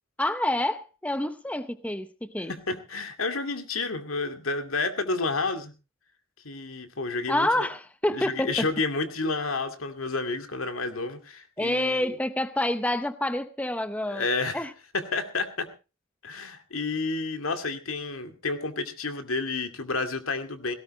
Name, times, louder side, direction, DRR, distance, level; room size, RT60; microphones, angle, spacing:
voice 1, 0.2-2.5 7.3-8.7 11.6-14.3 14.5-14.7, left 1 dB, 5° left, 0.7 m, -28 dB
voice 2, 2.5-5.7 6.4-7.7 8.1-12.1 14.1-14.7 14.9-15.7 16.2-20.7, left 3 dB, 80° left, 2.3 m, -30 dB
18.0 x 17.0 x 3.2 m
head